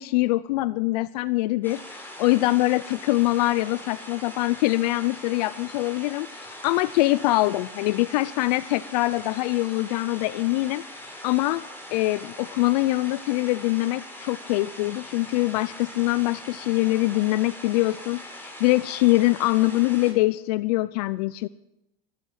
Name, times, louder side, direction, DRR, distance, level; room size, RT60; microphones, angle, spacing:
voice 1, 0.0-11.6 11.9-21.5, left 19 dB, 75° left, 16 dB, 0.5 m, -24 dB
sound 1, 1.6-20.1, left 1 dB, 10° left, 5.4 m, -42 dB
14.0 x 13.0 x 7.8 m, 0.88 s
supercardioid pair, 120°, 20 cm